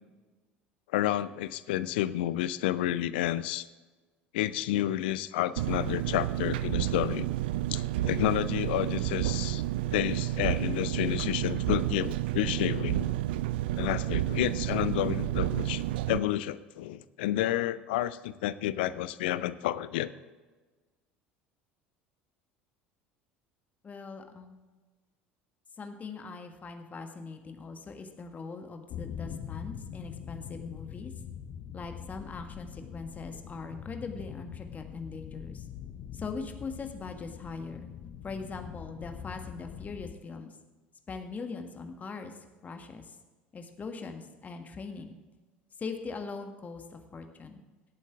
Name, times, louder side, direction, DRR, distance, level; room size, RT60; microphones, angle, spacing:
voice 1, 0.9-3.6 4.3-7.3 7.7-9.6 9.9-13.2 13.8-20.1, left 13 dB, 65° left, 15 dB, 0.5 m, -30 dB
Engine, 5.6-16.2, right 14 dB, 65° right, 0.4 m, -30 dB
voice 2, 23.8-24.6 25.8-31.1 31.7-35.6 36.1-37.9 38.2-40.5 41.1-42.4 42.6-43.2 43.5-45.2 45.8-47.6, left 4 dB, 25° left, 5 dB, 1.6 m, -41 dB
sound 1, 28.9-40.2, left 9 dB, 45° left, 0.9 m, -43 dB
19.0 x 8.3 x 3.6 m, 1.3 s
figure-of-eight pair, 65°, 6 cm